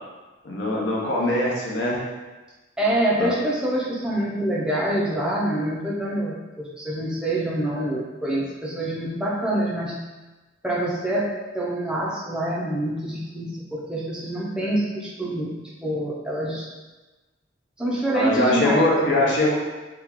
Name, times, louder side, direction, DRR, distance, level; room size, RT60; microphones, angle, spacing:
voice 1, 0.4-2.0 3.2-3.3 18.1-19.5, left 1 dB, 60° left, -4 dB, 0.6 m, -22 dB
voice 2, 2.8-9.9 10.6-11.3 11.5-15.5 15.8-16.7 17.8-19.4, right 1 dB, 5° right, -6 dB, 0.5 m, -26 dB
2.9 x 2.2 x 3.6 m, 1.2 s
head